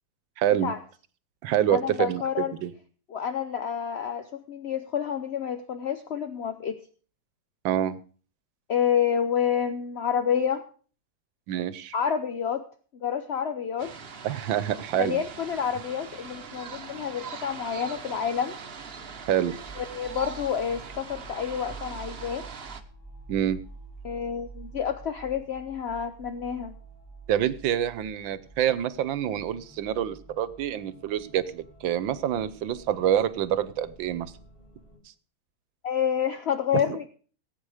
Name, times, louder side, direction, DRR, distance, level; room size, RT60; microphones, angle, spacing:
voice 1, 0.4-0.7 1.4-2.7 7.6-8.0 11.5-11.9 14.2-15.2 19.3-19.5 23.3-23.6 27.3-34.3 36.7-37.0, right 10 dB, 80° right, 16 dB, 1.6 m, -27 dB
voice 2, 1.7-2.5 3.1-6.8 8.7-10.6 11.9-12.6 13.0-13.9 15.0-18.6 19.8-22.4 24.0-26.7 35.8-37.1, left 8 dB, 55° left, 8 dB, 0.7 m, -28 dB
sound 1, 13.8-22.8, right 6 dB, 40° right, 1.0 m, -41 dB
sound 2, 16.2-35.0, right 4 dB, 30° left, 4.4 m, -48 dB
18.5 x 8.8 x 4.9 m, 0.41 s
omnidirectional pair, 2.0 m